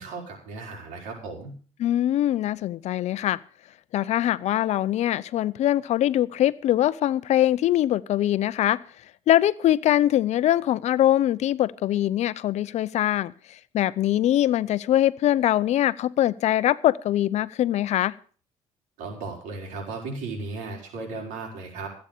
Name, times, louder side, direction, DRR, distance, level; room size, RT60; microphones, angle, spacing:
voice 1, 0.0-1.5 19.0-21.9, right 3 dB, 85° right, 5.4 m, -35 dB
voice 2, 1.8-3.4 3.9-8.8 9.3-18.1, left 12 dB, 65° left, 0.6 m, -23 dB
14.5 x 8.8 x 6.7 m
cardioid pair, 105°, 13 cm